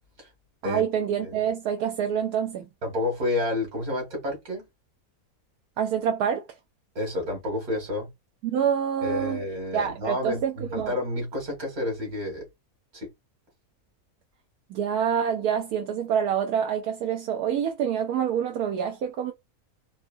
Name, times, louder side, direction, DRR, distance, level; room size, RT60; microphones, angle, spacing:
voice 1, 0.6-2.7 5.8-6.4 8.4-9.4 9.7-11.0 14.7-19.3, right 8 dB, 90° right, 1.2 m, -26 dB
voice 2, 2.8-4.6 7.0-8.1 9.0-12.5 12.9-13.1, left 2 dB, 70° right, 2.5 m, -30 dB
4.4 x 2.7 x 2.6 m
omnidirectional pair, 1.6 m